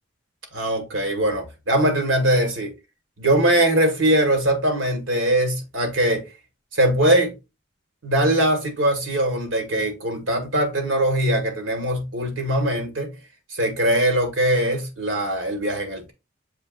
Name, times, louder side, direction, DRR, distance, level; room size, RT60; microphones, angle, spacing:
voice 1, 0.5-2.7 3.2-6.3 6.7-7.3 8.0-13.1 13.5-16.1, right 1 dB, 90° right, 1.5 m, -21 dB
7.1 x 2.9 x 2.5 m
head